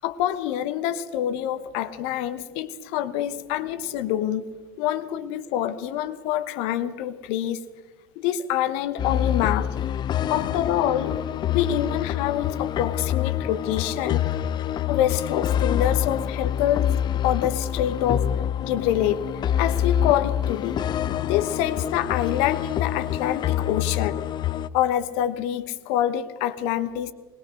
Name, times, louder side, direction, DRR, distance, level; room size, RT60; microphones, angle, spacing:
voice 1, 0.0-4.5 4.8-7.6 8.2-9.7 10.3-11.2 11.5-14.3 14.9-16.9 17.2-18.3 18.6-19.2 19.6-20.8 21.2-24.1 24.7-27.1, left 11 dB, 60° left, 11 dB, 1.2 m, -26 dB
sound 1, 9.0-24.7, left 10 dB, 35° left, 0.8 m, -26 dB
21.0 x 20.0 x 6.3 m, 1.3 s
figure-of-eight pair, 75°, 12 cm